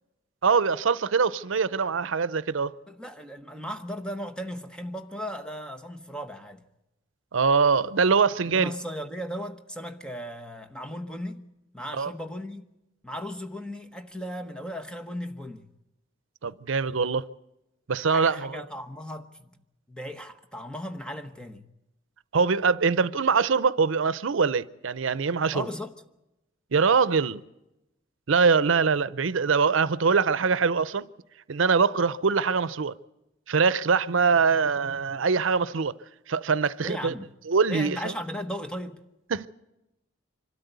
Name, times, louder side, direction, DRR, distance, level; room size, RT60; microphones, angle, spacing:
voice 1, 0.4-2.7 7.3-8.7 11.9-12.1 16.4-17.2 17.9-18.6 22.3-25.7 26.7-27.4 28.3-31.1 31.5-32.9 33.5-35.9 36.3-37.1 37.5-38.1 39.3-39.5, right 5 dB, 85° right, 0.6 m, -23 dB
voice 2, 2.9-6.6 8.4-11.5 11.7-12.7 13.0-15.7 18.1-19.5 19.9-21.7 25.5-25.9 36.8-37.3 37.7-39.0, equal, 5° left, 1.1 m, -36 dB
25.0 x 13.0 x 8.1 m
head